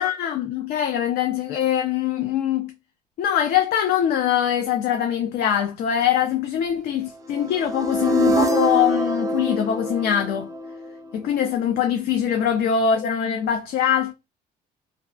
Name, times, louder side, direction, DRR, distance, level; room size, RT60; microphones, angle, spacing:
voice 1, 0.0-2.7 3.2-10.5 11.1-14.1, left 9 dB, 65° left, 0.4 m, -23 dB
sound 1, 7.3-11.3, equal, 20° right, 0.4 m, -24 dB
2.6 x 2.3 x 2.2 m
cardioid pair, 110°, 17 cm